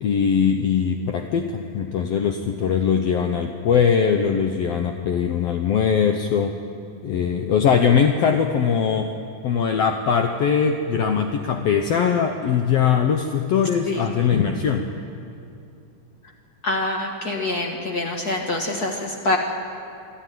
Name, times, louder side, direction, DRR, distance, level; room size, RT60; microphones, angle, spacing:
voice 1, 0.0-6.6 7.0-9.1 9.4-14.8, left 7 dB, 80° left, 5 dB, 1.4 m, -21 dB
voice 2, 16.6-19.4, left 2 dB, 60° left, 2 dB, 1.0 m, -25 dB
26.0 x 11.5 x 9.3 m, 2.5 s
omnidirectional pair, 4.0 m